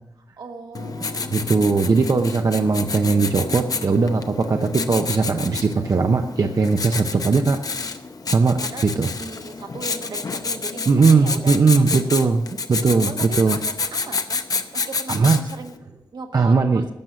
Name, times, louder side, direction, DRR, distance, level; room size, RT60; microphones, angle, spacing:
voice 1, 0.4-1.9 8.6-8.9 9.1-12.3 13.1-14.4 14.7-15.7 16.1-16.8, right 4 dB, 70° right, 4 dB, 1.5 m, -38 dB
Writing, 0.7-15.7, left 4 dB, 55° left, 0.7 m, -29 dB
voice 2, 1.3-7.6 8.3-9.1 10.9-12.4 12.7-13.6 15.1-15.4 16.3-16.8, right 4 dB, 50° right, 4 dB, 0.7 m, -19 dB
12.0 x 7.8 x 6.8 m, 0.95 s
wide cardioid pair, 125°, 8 cm